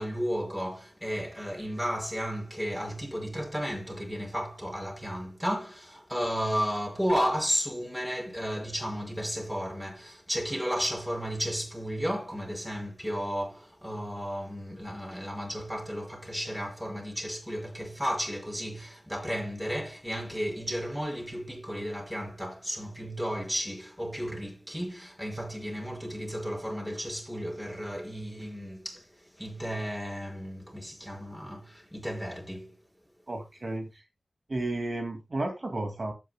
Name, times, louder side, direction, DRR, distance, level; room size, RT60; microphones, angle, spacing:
voice 1, 0.0-32.7, equal, 5° right, 5.7 m, -33 dB
voice 2, 33.3-33.9 34.5-36.1, right 2 dB, 45° right, 2.2 m, -32 dB
14.5 x 9.4 x 2.2 m
wide cardioid pair, 75°, 0 cm